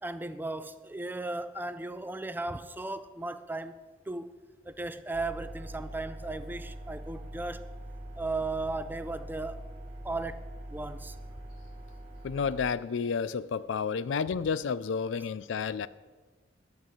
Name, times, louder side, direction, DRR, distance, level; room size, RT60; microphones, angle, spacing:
voice 1, 0.0-3.8 4.1-4.3 4.7-7.6 8.2-9.7 10.0-10.4 10.7-11.1, right 2 dB, 10° right, 0.4 m, -36 dB
sound 1, 5.1-12.7, right 1 dB, 35° right, 2.3 m, -43 dB
voice 2, 12.2-15.9, left 6 dB, 75° left, 0.4 m, -31 dB
11.5 x 5.5 x 7.8 m
head